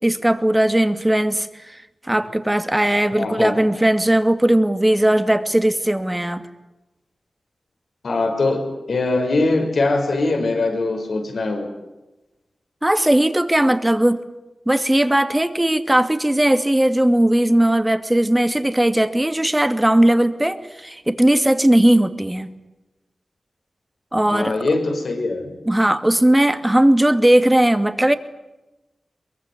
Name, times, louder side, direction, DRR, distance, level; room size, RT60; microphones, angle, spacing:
voice 1, 0.0-6.5 12.8-14.2 14.7-22.5 24.1-24.6 25.7-28.1, right 1 dB, 15° right, 9 dB, 2.5 m, -18 dB
voice 2, 3.1-3.6 8.0-11.7 24.3-25.5, left 2 dB, 75° left, 5 dB, 5.9 m, -22 dB
23.0 x 22.5 x 9.7 m, 1.0 s
cardioid pair, 55°, 0 cm